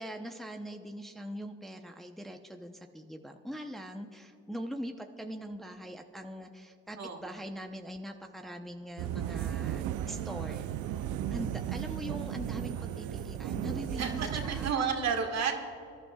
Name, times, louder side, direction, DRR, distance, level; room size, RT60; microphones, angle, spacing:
voice 1, 0.0-10.7 11.3-14.9, equal, ahead, 4 dB, 0.8 m, -42 dB
sound 1, 9.0-14.7, right 11 dB, 75° right, 0.6 m, -35 dB
voice 2, 14.0-15.5, right 6 dB, 55° right, 3 dB, 1.9 m, -31 dB
24.0 x 11.5 x 2.4 m, 2.4 s
supercardioid pair, 65°, 31 cm